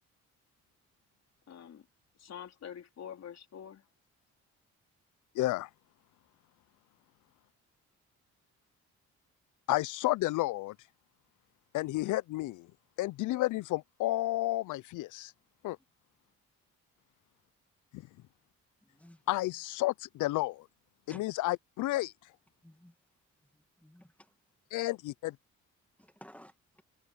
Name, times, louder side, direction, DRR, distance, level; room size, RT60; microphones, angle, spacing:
voice 1, 1.5-1.9 2.2-3.8, left 9 dB, 60° left, 3.6 m, -46 dB
voice 2, 5.3-5.7 9.7-10.8 11.7-12.7 13.0-15.3 15.6-15.8 17.9-18.0 19.3-20.7 21.1-22.1 24.7-25.4, left 17 dB, 80° left, 0.6 m, -31 dB
voice 3, 18.8-19.2 21.1-21.2 22.6-23.0 23.5-24.1 26.0-26.8, equal, 5° left, 1.9 m, -55 dB
cardioid pair, 90°, 30 cm